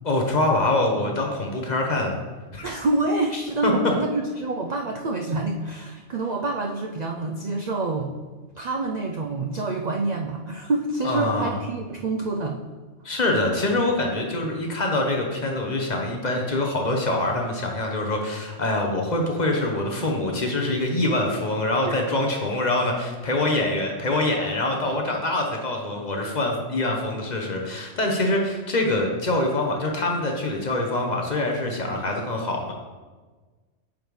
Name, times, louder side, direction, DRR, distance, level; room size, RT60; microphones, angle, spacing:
voice 1, 0.0-2.2 2.5-2.7 3.6-3.7 11.0-11.6 13.0-32.7, left 2 dB, 40° left, 1 dB, 0.9 m, -24 dB
voice 2, 2.6-8.1 8.6-12.6 21.9-22.0, right 2 dB, 60° right, 2 dB, 0.4 m, -27 dB
8.6 x 5.2 x 3.1 m, 1.3 s
omnidirectional pair, 1.3 m